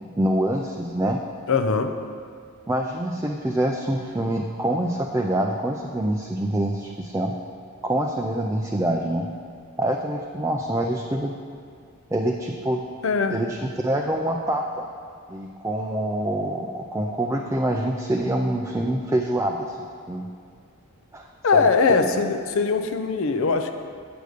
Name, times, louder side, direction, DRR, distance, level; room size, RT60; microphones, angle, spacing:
voice 1, 0.2-1.2 2.7-7.3 7.8-9.3 9.8-11.3 12.1-12.8 13.3-13.6 13.8-14.9 15.3-19.8 20.1-20.3 21.1-21.2 21.5-21.7 22.0-22.3, right 1 dB, 15° right, 1 dB, 0.4 m, -25 dB
voice 2, 1.5-1.9 13.0-13.4 21.4-23.7, left 4 dB, 65° left, 7 dB, 0.5 m, -21 dB
7.8 x 6.6 x 5.0 m, 2.2 s
head